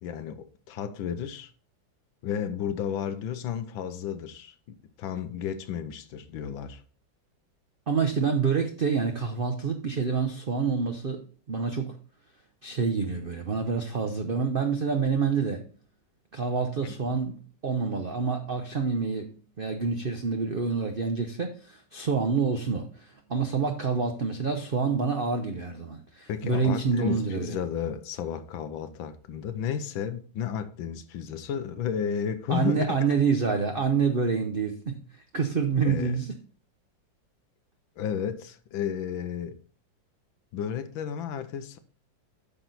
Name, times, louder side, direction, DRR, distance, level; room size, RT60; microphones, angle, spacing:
voice 1, 0.0-1.5 2.2-6.8 16.8-17.0 26.3-33.2 35.8-36.2 38.0-39.6 40.5-41.8, left 8 dB, 90° left, 1.5 m, -33 dB
voice 2, 7.9-11.2 11.5-12.0 12.6-15.6 16.3-17.4 17.6-19.3 19.6-27.5 32.5-35.0 35.3-36.3, right 5 dB, 50° right, 0.6 m, -27 dB
9.1 x 6.1 x 4.0 m
omnidirectional pair, 2.1 m